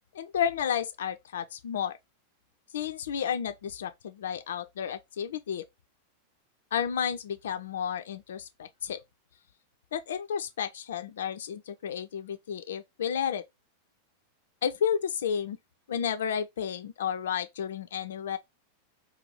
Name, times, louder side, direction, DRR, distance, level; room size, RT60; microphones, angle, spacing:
voice 1, 0.1-2.0 2.7-5.6 6.7-9.0 9.9-13.4 14.6-15.6 15.9-18.4, left 8 dB, 60° left, 0.3 m, -32 dB
2.6 x 2.3 x 3.1 m
figure-of-eight pair, 90°, 0 cm